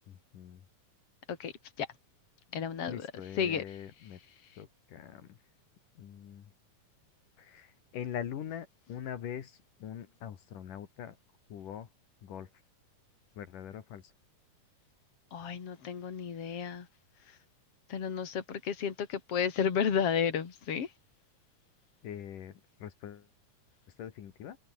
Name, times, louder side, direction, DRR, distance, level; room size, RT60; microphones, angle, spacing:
voice 1, 0.1-0.6 2.9-4.2 4.6-5.4 6.0-6.5 7.4-11.2 11.5-11.9 12.2-12.5 13.4-14.0 22.0-23.3 24.0-24.6, left 9 dB, 75° left, 3.5 m, -43 dB
voice 2, 2.5-3.1 3.4-3.6 15.3-16.9 17.9-20.9, left 7 dB, 45° left, 3.6 m, -32 dB
omnidirectional pair, 3.7 m